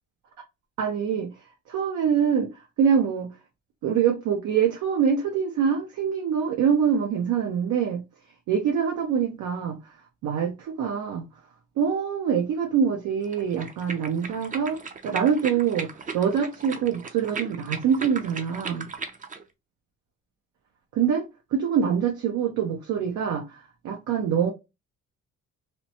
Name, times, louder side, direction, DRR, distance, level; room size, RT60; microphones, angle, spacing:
voice 1, 0.8-1.3 1.7-3.3 3.8-8.0 8.5-9.8 10.2-11.2 11.8-14.8 15.0-18.9 20.9-21.2 21.5-24.5, right 7 dB, 80° right, 0.7 m, -25 dB
sound 1, 13.2-19.4, right 4 dB, 25° right, 0.5 m, -37 dB
2.9 x 2.0 x 2.7 m
cardioid pair, 90°, 30 cm